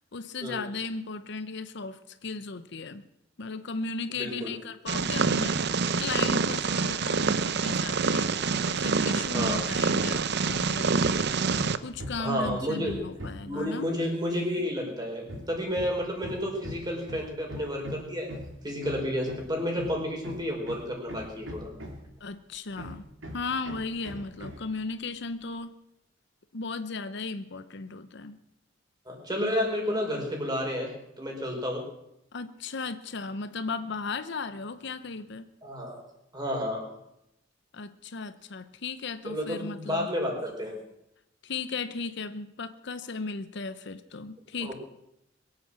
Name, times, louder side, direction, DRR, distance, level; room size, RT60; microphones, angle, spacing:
voice 1, 0.1-3.0 3.4-5.6 6.0-8.3 8.6-10.9 11.8-13.8 22.2-23.1 23.3-25.7 26.5-28.4 32.3-35.5 37.7-40.1 41.4-44.7, left 4 dB, 65° left, 12 dB, 0.8 m, -36 dB
voice 2, 4.1-4.5 9.3-9.6 12.2-13.0 13.5-18.3 18.6-21.7 29.0-31.9 35.6-36.0 36.3-36.9 39.2-40.8 44.6-44.8, equal, 20° right, 0 dB, 5.0 m, -31 dB
Purr, 4.9-11.8, right 4 dB, 60° right, 0.7 m, -26 dB
Hammer, 9.4-9.7 10.0-13.6 15.3-22.2 22.8-24.7, equal, 80° right, 3.3 m, -40 dB
22.5 x 8.5 x 7.6 m, 0.81 s
head